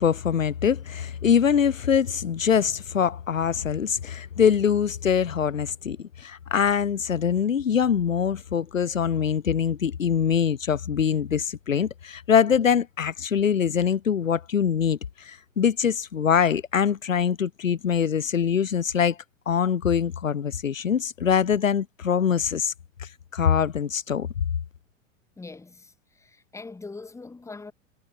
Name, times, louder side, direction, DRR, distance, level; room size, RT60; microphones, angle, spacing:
voice 1, 0.0-19.2 19.5-22.7 23.0-24.3, left 7 dB, 80° left, 0.8 m, -23 dB
voice 2, 25.4-27.7, left 3 dB, 5° left, 1.6 m, -42 dB
figure-of-eight pair, 90°, 39 cm